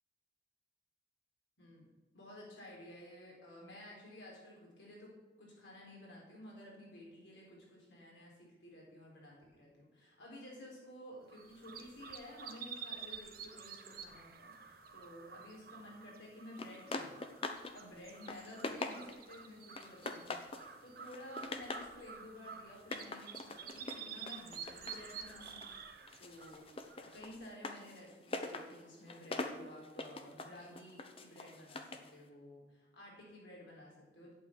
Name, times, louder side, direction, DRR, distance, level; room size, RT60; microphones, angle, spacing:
voice 1, 2.1-17.1 17.7-20.4 20.8-25.6 26.2-34.3, left 1 dB, 85° left, -3 dB, 4.0 m, -53 dB
sound 1, 11.3-27.4, right 7 dB, 55° right, 1.0 m, -50 dB
sound 2, 16.6-17.7 18.1-19.3 19.8-20.7 21.1-21.9 22.8-25.8 26.1-32.1, left 2 dB, 30° left, 0.8 m, -43 dB
8.4 x 7.1 x 8.7 m, 1.2 s
head